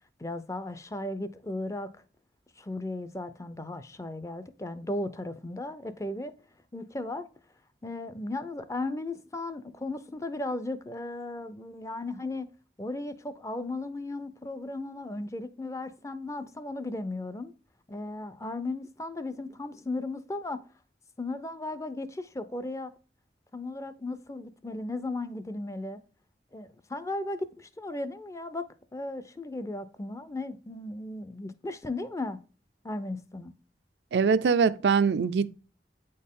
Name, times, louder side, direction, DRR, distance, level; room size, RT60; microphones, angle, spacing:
voice 1, 0.2-1.9 2.6-6.3 6.7-7.3 7.8-12.5 12.8-17.5 17.9-20.6 21.2-22.9 23.5-26.0 26.5-32.4 32.8-33.5, left 2 dB, 15° left, 0.4 m, -36 dB
voice 2, 34.1-35.5, right 5 dB, 80° right, 0.4 m, -23 dB
8.9 x 4.3 x 3.6 m
head